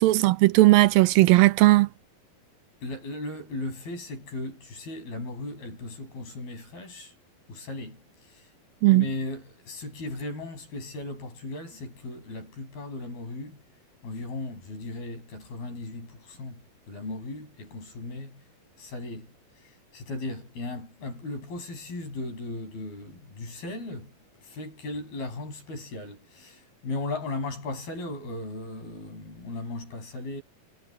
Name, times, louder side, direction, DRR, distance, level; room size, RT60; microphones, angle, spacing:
voice 1, 0.0-1.9 8.8-9.1, right 19 dB, 80° right, 2.4 m, -17 dB
voice 2, 2.8-7.1 7.5-8.0 8.9-13.6 14.0-16.6 16.9-18.4 18.8-19.3 19.9-24.1 24.4-30.4, left 2 dB, 85° left, 10.0 m, -36 dB
omnidirectional pair, 4.2 m